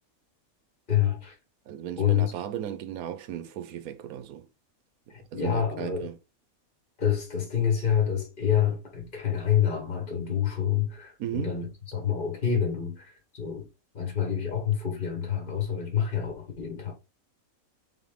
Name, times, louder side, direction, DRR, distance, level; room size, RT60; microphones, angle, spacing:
voice 1, 0.9-1.3 2.0-2.3 5.1-6.1 7.0-11.7 11.9-13.7 13.9-16.9, left 9 dB, 40° left, 1.3 m, -27 dB
voice 2, 1.7-4.5 5.3-6.2 11.2-11.6, right 10 dB, 80° right, 1.1 m, -36 dB
3.7 x 3.7 x 3.5 m
omnidirectional pair, 1.5 m